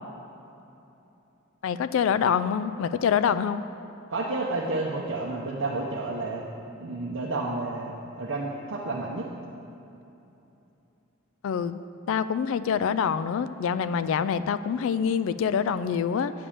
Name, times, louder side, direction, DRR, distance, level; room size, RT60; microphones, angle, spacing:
voice 1, 1.6-3.6 11.4-11.8 12.1-16.3, left 7 dB, 70° left, 14 dB, 0.3 m, -25 dB
voice 2, 4.1-6.4 6.8-9.3, right 2 dB, 70° right, -3 dB, 0.7 m, -30 dB
8.5 x 5.1 x 7.0 m, 2.9 s
head